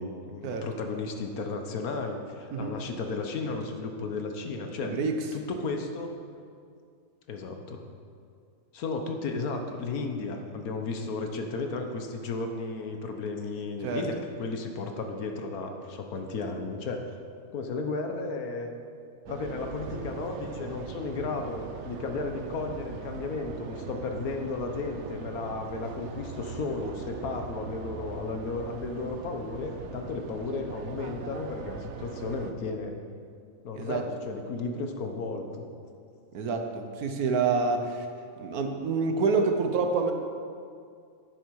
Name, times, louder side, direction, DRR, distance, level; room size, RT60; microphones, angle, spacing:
voice 1, 0.0-4.9 5.5-6.1 7.3-7.8 8.7-17.1 17.5-18.7 19.3-32.9 33.6-35.6, left 3 dB, 80° left, 4 dB, 1.5 m, -34 dB
voice 2, 4.8-5.3 13.8-14.1 33.8-34.0 36.3-38.1 38.4-40.1, right 4 dB, 85° right, 5 dB, 1.4 m, -27 dB
sound 1, 19.3-32.5, right 6 dB, 60° right, 0.9 m, -41 dB
10.5 x 9.2 x 4.7 m, 2.3 s
omnidirectional pair, 1.5 m